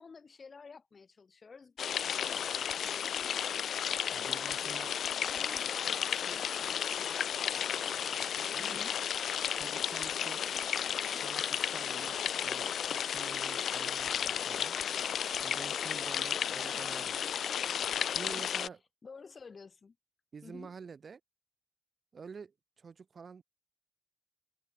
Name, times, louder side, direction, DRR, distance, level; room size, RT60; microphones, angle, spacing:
voice 1, 0.0-3.8 5.0-7.9 8.6-9.0 15.9-16.1 16.4-16.8 19.0-20.0 20.4-20.7, left 5 dB, 35° left, 5.2 m, -53 dB
sound 1, 1.8-18.7, left 8 dB, 60° left, 0.3 m, -33 dB
voice 2, 4.1-4.9 8.4-8.9 9.5-10.5 11.1-14.7 15.4-17.3 18.0-18.8 20.3-21.2 22.1-23.4, right 5 dB, 40° right, 2.5 m, -48 dB
cardioid pair, 90°, 0 cm